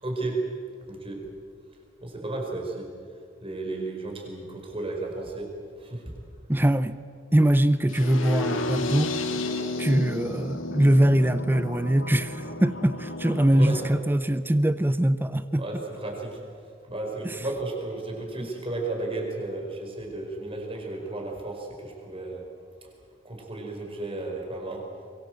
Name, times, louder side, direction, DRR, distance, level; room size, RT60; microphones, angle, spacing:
voice 1, 0.0-0.4 0.9-1.2 2.0-2.9 3.4-5.5 5.8-6.0 13.6-13.8 15.6-16.4 16.9-22.4 23.2-24.9, right 2 dB, 30° right, 1 dB, 5.0 m, -33 dB
voice 2, 6.5-7.0 7.3-9.2 9.8-15.8 17.2-17.4 18.4-18.5, right 1 dB, 10° right, 14 dB, 0.6 m, -22 dB
sound 1, 7.9-13.9, left 2 dB, 80° left, 2.2 m, -32 dB
24.0 x 23.0 x 7.9 m, 2.3 s
head